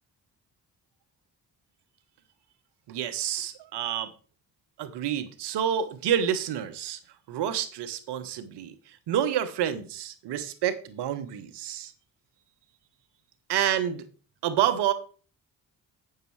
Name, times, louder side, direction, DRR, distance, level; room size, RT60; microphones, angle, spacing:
voice 1, 2.9-4.1 4.8-7.0 7.3-8.7 9.1-11.9 13.5-14.0 14.4-14.9, right 10 dB, 80° right, 1.0 m, -28 dB
8.2 x 6.7 x 4.6 m
supercardioid pair, 45°, 40 cm